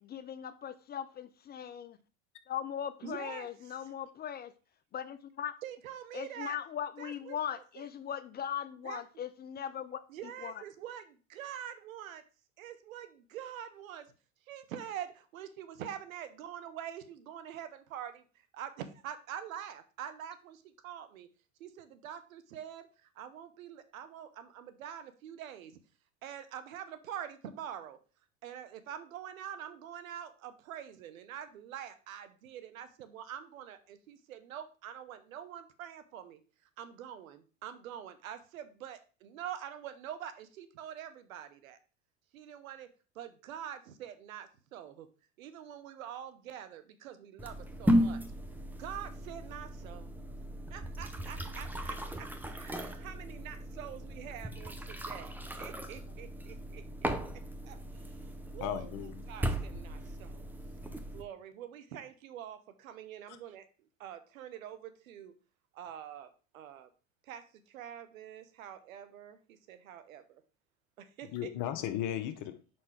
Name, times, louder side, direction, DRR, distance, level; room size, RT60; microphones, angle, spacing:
voice 1, 0.0-2.0 2.5-4.5 4.9-5.5 6.1-10.0 10.4-10.5, left 9 dB, 25° left, 0.4 m, -39 dB
voice 2, 3.0-3.9 5.6-6.6 7.0-7.9 8.8-9.0 10.1-12.2 12.6-14.1 14.5-18.2 18.5-21.3 21.6-25.8 26.2-28.0 28.4-36.4 36.8-41.8 42.3-45.1 45.4-48.2 48.8-50.1 50.7-55.3 55.6-57.1 57.6-58.2 58.5-58.9 59.3-60.4 61.1-65.4 65.7-66.9 67.2-70.4 71.0-71.5, right 9 dB, 90° right, 0.9 m, -45 dB
sound 1, 47.4-61.2, equal, 5° right, 0.7 m, -36 dB
voice 3, 58.6-59.2 63.3-63.4 71.2-72.6, left 12 dB, 50° left, 1.0 m, -36 dB
5.5 x 4.4 x 4.8 m
hypercardioid pair, 95°, 39 cm